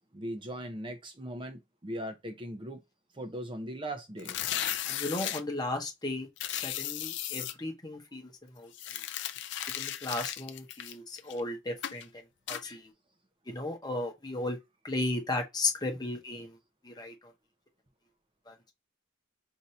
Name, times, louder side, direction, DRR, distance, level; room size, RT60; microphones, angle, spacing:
voice 1, 0.1-2.8 3.1-4.4, right 1 dB, 25° right, 0.6 m, -39 dB
sound 1, 4.2-5.4 6.4-7.5 8.7-11.4 11.8-12.0 12.5-12.6, left 12 dB, 60° left, 0.4 m, -35 dB
voice 2, 4.9-8.7 9.8-12.1 12.5-12.9 13.5-14.6 14.8-16.6 16.8-17.1 18.5-18.6, left 2 dB, 20° left, 0.9 m, -35 dB
2.8 x 2.6 x 4.3 m
head